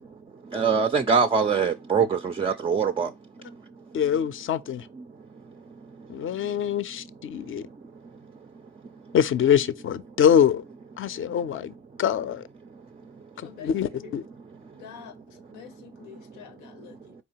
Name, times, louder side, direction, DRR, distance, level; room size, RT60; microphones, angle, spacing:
voice 1, 0.5-3.1, right 5 dB, 20° right, 0.3 m, -23 dB
voice 2, 3.9-4.9 6.1-7.6 9.1-10.6 11.0-11.7 12.0-12.4 13.4-14.2, left 8 dB, 45° left, 0.5 m, -24 dB
voice 3, 13.4-14.2 14.7-17.1, left 9 dB, 85° left, 0.7 m, -47 dB
4.3 x 3.2 x 2.8 m
cardioid pair, 90°, 30 cm